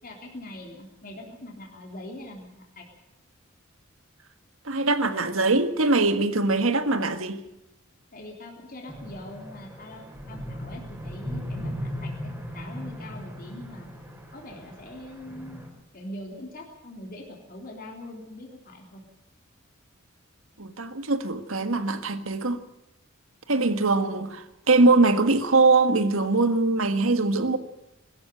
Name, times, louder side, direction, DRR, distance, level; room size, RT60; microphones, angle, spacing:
voice 1, 0.0-2.8 8.1-13.9 14.3-15.6 15.9-19.0, left 1 dB, 45° left, 3.5 m, -42 dB
voice 2, 4.6-7.4 20.6-22.6 23.5-27.6, right 3 dB, 75° right, 1.7 m, -22 dB
sound 1, 8.9-15.7, equal, 10° right, 4.3 m, -37 dB
21.5 x 13.5 x 9.2 m
head